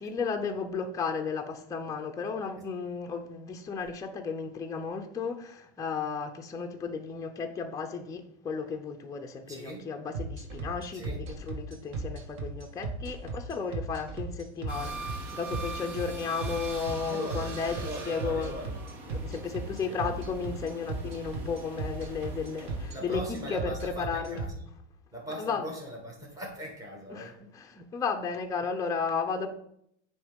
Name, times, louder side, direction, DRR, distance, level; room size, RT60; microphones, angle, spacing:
voice 1, 0.0-17.8 18.1-18.5 19.1-24.4 25.4-25.7 27.1-29.5, left 5 dB, 10° left, 0.5 m, -34 dB
voice 2, 9.5-9.9 10.9-11.2 17.1-18.8 19.4-20.1 22.7-24.6 25.1-27.4, equal, 10° right, 1.7 m, -41 dB
sound 1, 10.1-24.5, right 4 dB, 50° right, 1.5 m, -35 dB
sound 2, 14.7-23.6, right 3 dB, 85° right, 1.8 m, -43 dB
9.4 x 3.2 x 5.2 m
supercardioid pair, 140°, 35 cm